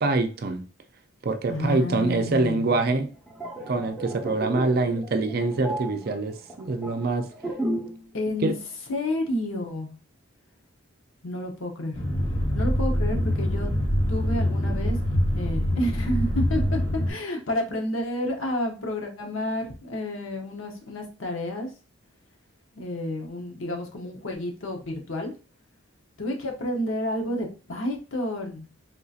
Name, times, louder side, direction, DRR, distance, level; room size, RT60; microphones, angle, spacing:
voice 1, 0.0-0.6 1.2-3.1 3.7-7.2 8.4-8.5, right 3 dB, 50° right, 0.4 m, -25 dB
voice 2, 1.5-3.0 8.1-8.5 8.9-10.0 11.2-12.0 12.5-13.7 14.1-15.0 15.3-16.6 16.9-21.7 22.7-25.3 26.2-28.7, left 1 dB, 75° left, 0.8 m, -30 dB
sound 1, 3.1-8.0 8.3-8.6, right 1 dB, 5° left, 0.9 m, -33 dB
sound 2, 11.9-17.1, equal, 30° left, 0.9 m, -25 dB
3.7 x 2.7 x 2.4 m
head